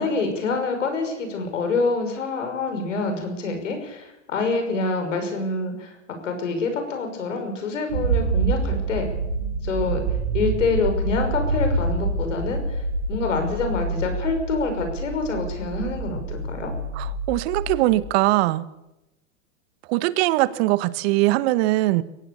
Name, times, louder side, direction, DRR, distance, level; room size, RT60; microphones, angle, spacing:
voice 1, 0.0-5.9 6.2-9.1 9.6-10.0 10.3-12.8 13.1-16.7, left 3 dB, 85° left, 5 dB, 6.1 m, -26 dB
sound 1, 7.9-18.0, right 3 dB, 80° right, 4.9 m, -27 dB
voice 2, 16.9-18.7 19.9-22.0, right 18 dB, 55° right, 16 dB, 1.2 m, -21 dB
23.0 x 17.0 x 6.9 m, 0.93 s
hypercardioid pair, 105°, 37 cm